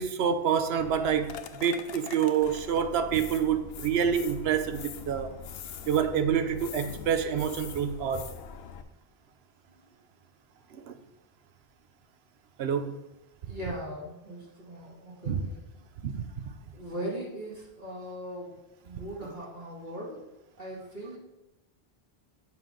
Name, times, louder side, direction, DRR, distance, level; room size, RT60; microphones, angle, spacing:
voice 1, 0.0-5.3 5.9-8.3 10.7-10.9 12.6-13.0 15.3-15.4 16.0-16.4, right 8 dB, 85° right, 0.9 m, -27 dB
sound 1, 0.8-8.8, left 7 dB, 75° left, 0.8 m, -43 dB
voice 2, 13.4-15.7 16.7-18.5 18.8-20.2 20.6-21.2, equal, 50° right, 2.3 m, -39 dB
7.5 x 5.7 x 3.8 m
omnidirectional pair, 1.0 m